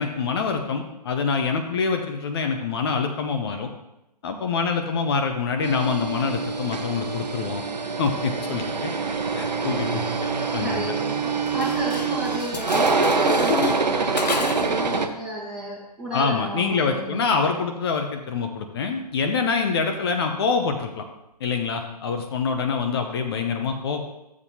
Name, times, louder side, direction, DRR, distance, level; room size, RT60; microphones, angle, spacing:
voice 1, 0.0-3.7 4.2-7.6 8.0-8.9 9.4-10.1 10.5-10.9 16.1-21.1 21.4-24.0, left 5 dB, 35° left, 5 dB, 0.8 m, -25 dB
sound 1, 5.6-15.1, right 4 dB, 80° right, 0.9 m, -25 dB
voice 2, 10.5-17.4, equal, 5° right, -6 dB, 1.5 m, -33 dB
Dishes pots and pans, 11.5-14.8, left 4 dB, 80° left, 0.8 m, -31 dB
12.0 x 7.3 x 2.8 m, 0.88 s
figure-of-eight pair, 135°, 21 cm